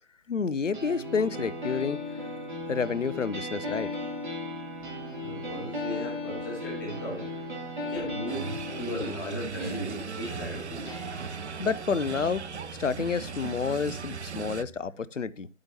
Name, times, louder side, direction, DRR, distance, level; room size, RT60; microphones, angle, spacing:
voice 1, 0.3-2.0 2.7-3.9 11.6-12.4 12.8-15.5, left 5 dB, 75° left, 0.7 m, -29 dB
sound 1, 0.7-14.7, left 1 dB, 40° right, 3.0 m, -37 dB
voice 2, 5.2-7.3 7.8-10.9, left 1 dB, 15° left, 2.7 m, -36 dB
sound 2, 8.3-14.6, right 6 dB, 65° right, 0.5 m, -38 dB
9.1 x 8.7 x 2.8 m
figure-of-eight pair, 155°, 38 cm